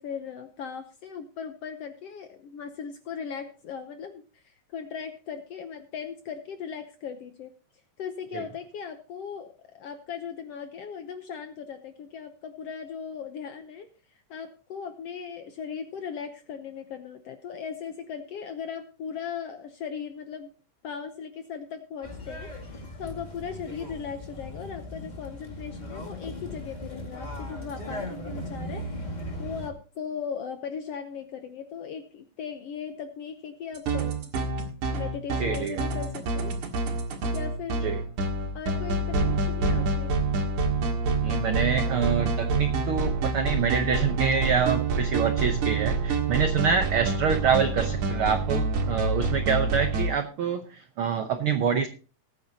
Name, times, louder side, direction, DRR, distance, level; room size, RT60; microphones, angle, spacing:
voice 1, 0.0-7.5 8.0-13.9 14.3-20.5 20.8-28.9 29.4-34.3 34.9-36.5 37.3-38.0 38.5-40.1, left 7 dB, 70° left, 8 dB, 1.5 m, -38 dB
sound 1, 22.0-29.7, left 1 dB, 20° left, 1.3 m, -38 dB
sound 2, 33.7-50.1, right 3 dB, 65° right, 3.2 m, -27 dB
voice 2, 35.4-35.8 37.8-38.0 41.2-51.9, right 6 dB, 85° right, 7 dB, 1.2 m, -26 dB
19.5 x 9.3 x 2.8 m, 0.36 s
omnidirectional pair, 3.7 m